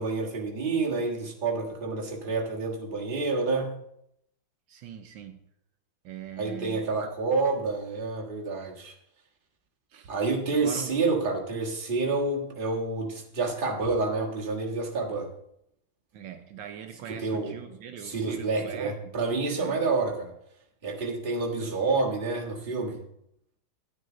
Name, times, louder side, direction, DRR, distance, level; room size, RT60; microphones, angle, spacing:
voice 1, 0.0-3.7 6.4-8.9 10.1-15.3 17.1-17.5 18.0-20.3 20.8-23.0, right 3 dB, 30° right, -1 dB, 1.6 m, -28 dB
voice 2, 4.7-5.4 6.0-7.1 9.9-10.1 10.5-11.0 16.1-19.1 19.6-19.8, right 9 dB, 75° right, 6 dB, 1.5 m, -42 dB
11.0 x 9.3 x 3.8 m, 0.76 s
omnidirectional pair, 2.0 m